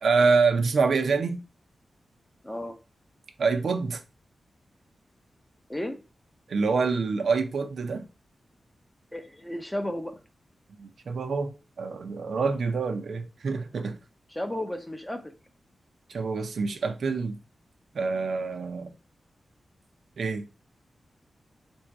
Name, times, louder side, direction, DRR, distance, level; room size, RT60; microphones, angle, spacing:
voice 1, 0.0-1.4 3.4-4.0 6.5-8.1 10.8-14.0 16.1-17.4 17.9-18.9 20.2-20.5, right 4 dB, 70° right, 0.7 m, -26 dB
voice 2, 2.4-2.8 5.7-6.0 9.1-10.2 14.3-15.3, left 1 dB, 10° left, 0.7 m, -33 dB
3.7 x 2.7 x 4.6 m
wide cardioid pair, 160°, 0 cm